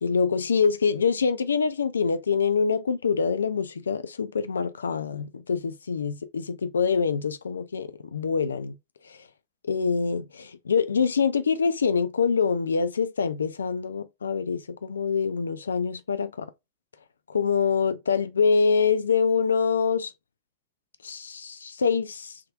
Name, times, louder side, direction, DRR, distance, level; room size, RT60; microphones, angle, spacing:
voice 1, 0.0-8.8 9.1-9.2 9.6-10.2 10.7-16.5 17.3-20.1 21.0-22.4, left 5 dB, 70° left, 0.3 m, -25 dB
3.5 x 2.6 x 2.3 m
figure-of-eight pair, 90°, 0 cm